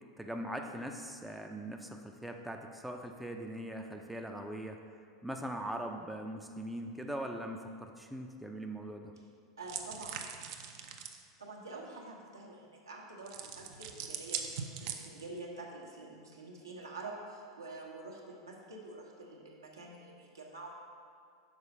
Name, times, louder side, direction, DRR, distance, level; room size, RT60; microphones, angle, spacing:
voice 1, 0.2-4.8 5.2-9.1, right 1 dB, ahead, 3 dB, 0.5 m, -41 dB
voice 2, 9.6-10.3 11.4-20.7, right 2 dB, 80° right, -2 dB, 1.2 m, -47 dB
sound 1, 9.7-11.2 13.3-15.4, right 8 dB, 50° right, 0.6 m, -41 dB
6.4 x 4.8 x 5.3 m, 2.3 s
figure-of-eight pair, 85°, 2 cm